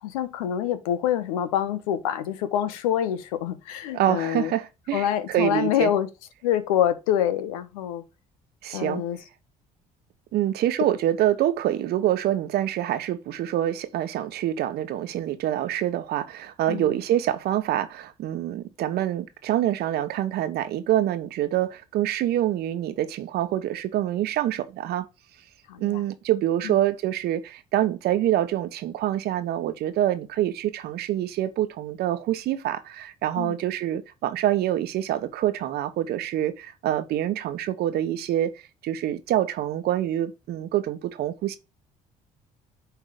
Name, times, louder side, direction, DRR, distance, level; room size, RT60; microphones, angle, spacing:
voice 1, 0.0-4.5 4.9-6.1 6.4-8.0 8.7-9.2 16.7-17.0 25.7-26.0 26.6-26.8 33.4-33.6, left 10 dB, 90° left, 1.0 m, -26 dB
voice 2, 3.9-5.9 8.6-9.0 10.3-25.1 25.8-38.5 38.8-41.6, right 12 dB, 70° right, 1.0 m, -26 dB
9.2 x 3.6 x 5.0 m
hypercardioid pair, 65°, 17 cm